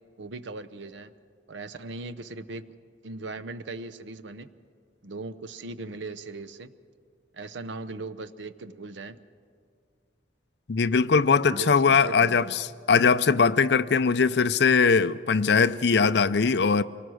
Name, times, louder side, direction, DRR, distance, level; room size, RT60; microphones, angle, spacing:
voice 1, 0.2-1.1 1.5-2.7 3.0-4.5 5.0-6.7 7.3-9.2 11.4-12.5, right 3 dB, 75° right, 12 dB, 0.7 m, -38 dB
voice 2, 10.7-16.8, left 5 dB, 65° left, 14 dB, 0.5 m, -21 dB
25.0 x 19.0 x 6.3 m, 2.2 s
head